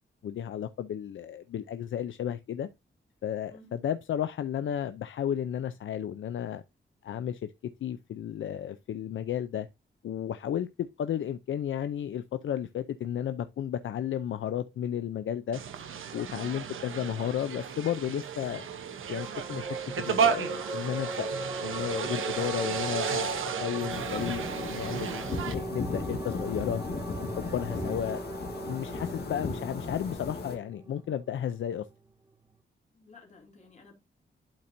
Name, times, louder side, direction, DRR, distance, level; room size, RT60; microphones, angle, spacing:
voice 1, 0.2-2.7 3.2-6.6 7.0-7.5 7.8-9.7 10.0-15.6 16.1-18.7 19.1-21.3 21.6-26.8 27.2-28.2 28.7-31.9, left 9 dB, 75° left, 0.5 m, -33 dB
sound 1, 15.5-25.5, right 7 dB, 90° right, 0.9 m, -33 dB
sound 2, 19.2-32.0, right 3 dB, 20° right, 0.8 m, -40 dB
sound 3, 23.9-30.5, left 3 dB, 55° left, 1.8 m, -36 dB
voice 2, 32.9-33.9, left 3 dB, 35° left, 2.6 m, -54 dB
11.5 x 4.3 x 2.6 m
wide cardioid pair, 145°, 20 cm